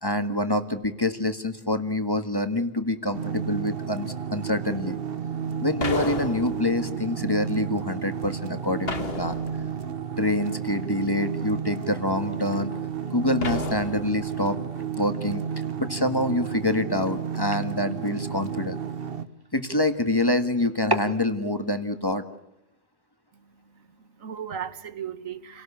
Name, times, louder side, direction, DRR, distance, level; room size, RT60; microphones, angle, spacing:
voice 1, 0.0-5.0 5.6-9.4 10.2-12.7 13.1-14.6 15.0-15.4 15.8-18.8 19.5-22.2, left 1 dB, 20° left, 1.5 m, -26 dB
sound 1, 3.1-19.3, right 7 dB, 45° right, 1.3 m, -32 dB
sound 2, 5.8-7.0 8.9-9.9 13.4-14.5, left 3 dB, 50° left, 1.9 m, -33 dB
sound 3, 10.2-22.2, right 1 dB, 15° right, 1.8 m, -40 dB
voice 2, 23.3-25.6, right 8 dB, 80° right, 1.6 m, -37 dB
29.5 x 18.5 x 8.5 m
omnidirectional pair, 1.4 m